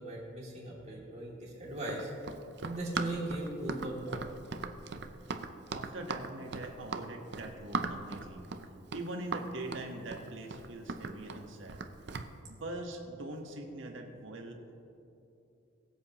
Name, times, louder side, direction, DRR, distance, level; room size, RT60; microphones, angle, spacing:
voice 1, 0.0-2.1 2.6-4.3, right 1 dB, 35° right, -5 dB, 2.7 m, -38 dB
Run, 1.8-12.3, right 4 dB, 60° right, 0.6 m, -39 dB
voice 2, 5.7-8.4 8.9-11.8 12.5-14.6, right 1 dB, 75° right, 2 dB, 1.4 m, -42 dB
22.0 x 7.8 x 3.0 m, 2.8 s
head